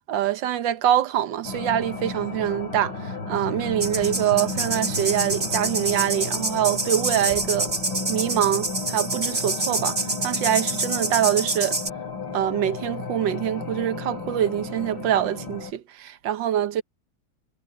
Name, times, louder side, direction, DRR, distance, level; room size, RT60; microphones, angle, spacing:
voice 1, 0.1-7.7 8.1-11.8 12.3-16.8, right 11 dB, 70° right, 1.6 m, -24 dB
sound 1, 1.4-15.7, left 3 dB, 85° left, 5.0 m, -33 dB
sound 2, 3.8-11.9, right 2 dB, 35° right, 3.9 m, -27 dB
omnidirectional pair, 2.1 m